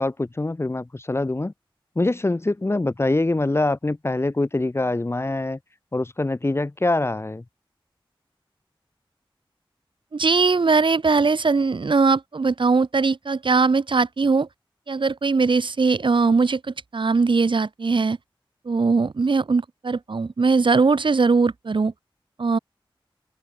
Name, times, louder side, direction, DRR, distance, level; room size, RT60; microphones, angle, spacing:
voice 1, 0.0-1.5 2.0-5.6 5.9-7.4, left 2 dB, 30° left, 0.7 m, -24 dB
voice 2, 10.1-14.5 14.9-18.2 18.6-21.9 22.4-22.6, right 4 dB, 60° right, 1.0 m, -20 dB
open air
wide cardioid pair, 70°, 9 cm